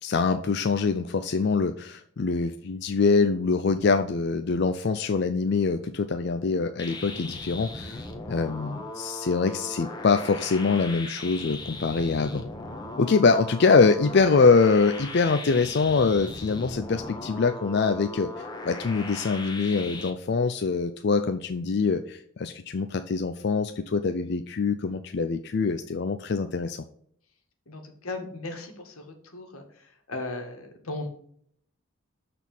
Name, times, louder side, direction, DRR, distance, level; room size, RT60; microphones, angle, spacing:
voice 1, 0.0-8.0 8.3-12.4 13.0-18.3 18.6-26.8, left 4 dB, 50° left, 8 dB, 0.4 m, -24 dB
sound 1, 6.8-20.1, left 2 dB, 20° left, 0.9 m, -38 dB
voice 2, 27.7-29.0 29.3-31.1, left 2 dB, 85° left, 4 dB, 1.8 m, -37 dB
7.1 x 4.3 x 5.9 m, 0.64 s
head